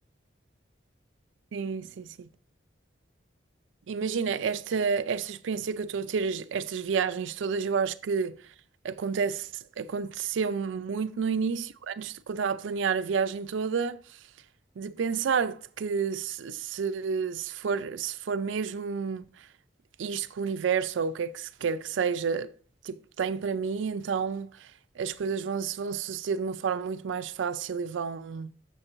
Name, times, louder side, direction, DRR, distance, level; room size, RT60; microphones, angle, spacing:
voice 1, 1.5-2.3 3.9-8.4 8.8-14.2 14.8-19.5 20.0-22.5 22.8-28.5, right 6 dB, 80° right, 0.4 m, -30 dB
6.7 x 6.5 x 3.0 m
head